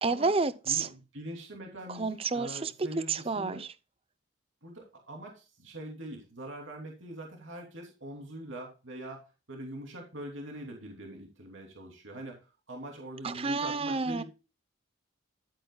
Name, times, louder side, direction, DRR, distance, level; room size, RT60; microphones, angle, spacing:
voice 1, 0.0-0.9 2.0-2.7 3.1-3.6 13.2-14.2, right 4 dB, 30° right, 0.6 m, -29 dB
voice 2, 0.6-3.6 4.6-9.2 9.5-12.4 12.7-14.2, right 1 dB, 65° right, 2.7 m, -43 dB
11.5 x 8.8 x 2.2 m
head